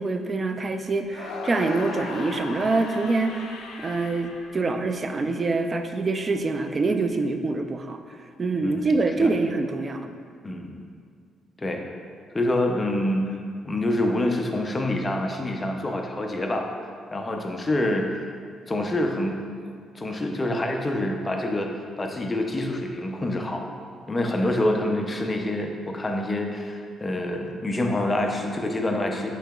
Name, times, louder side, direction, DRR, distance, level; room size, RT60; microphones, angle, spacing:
voice 1, 0.0-3.5 3.8-10.1, right 3 dB, 35° right, 6 dB, 0.3 m, -25 dB
sound 1, 1.1-5.3, left 3 dB, 85° left, 0.4 m, -37 dB
voice 2, 8.6-9.3 10.4-10.8 11.6-11.8 12.3-13.4 13.7-16.7 17.1-18.2 18.7-21.7 22.0-23.7 24.1-29.3, left 1 dB, 25° left, 2 dB, 0.5 m, -26 dB
7.8 x 2.9 x 2.3 m, 2.1 s
cardioid pair, 90°, 0 cm